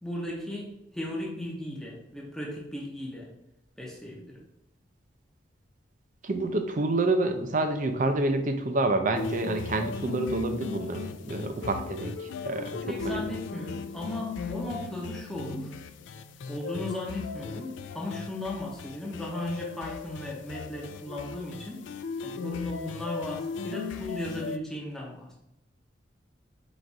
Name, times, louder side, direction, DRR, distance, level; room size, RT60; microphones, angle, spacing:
voice 1, 0.0-3.3 3.8-4.4 12.9-15.7 16.5-21.9 22.2-25.3, left 1 dB, 5° left, -3 dB, 0.7 m, -36 dB
voice 2, 6.2-12.7 13.0-13.2, right 2 dB, 40° right, 6 dB, 0.5 m, -28 dB
sound 1, 9.1-24.6, left 5 dB, 75° left, 0.3 m, -37 dB
4.0 x 2.5 x 4.6 m, 0.84 s
head